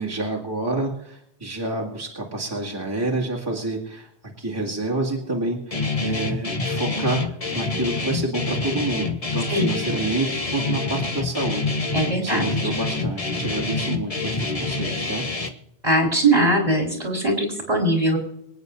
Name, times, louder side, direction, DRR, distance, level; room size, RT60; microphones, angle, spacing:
voice 1, 0.0-4.1 4.4-15.2, right 2 dB, 20° right, -5 dB, 2.3 m, -28 dB
Guitar, 5.7-15.5, left 3 dB, 30° left, 1.3 m, -27 dB
voice 2, 9.5-9.8 11.9-12.5 15.8-18.2, right 1 dB, 35° right, 2 dB, 4.0 m, -21 dB
25.5 x 9.3 x 2.7 m, 0.76 s
omnidirectional pair, 1.2 m